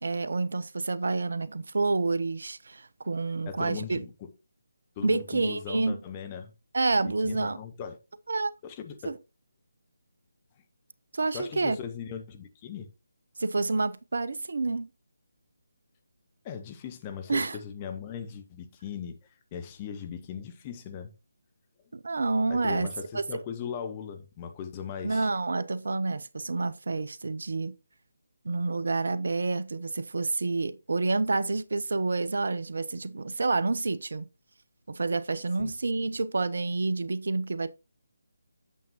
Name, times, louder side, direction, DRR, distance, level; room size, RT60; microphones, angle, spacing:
voice 1, 0.0-4.0 5.0-6.0 6.7-7.6 8.3-8.5 9.0-9.2 11.1-11.8 13.4-14.9 17.3-17.6 21.9-22.9 23.1-23.2 25.0-27.7 28.4-34.3 34.9-37.7, right 3 dB, 60° right, 0.6 m, -28 dB
voice 2, 3.5-4.3 5.0-6.5 7.0-8.0 8.6-9.1 11.3-12.9 16.4-19.2 19.5-21.1 22.5-25.3 35.6-35.7, left 7 dB, 25° left, 1.0 m, -39 dB
8.4 x 7.1 x 2.8 m
figure-of-eight pair, 150°, 0 cm